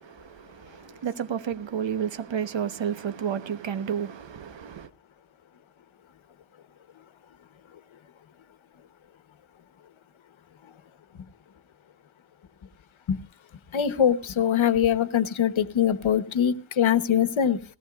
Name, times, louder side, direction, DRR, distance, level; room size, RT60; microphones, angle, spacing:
voice 1, 0.0-4.9, right 8 dB, 70° right, 1.2 m, -31 dB
voice 2, 13.7-17.6, left 9 dB, 90° left, 1.2 m, -23 dB
19.0 x 17.5 x 2.4 m
wide cardioid pair, 135°, 46 cm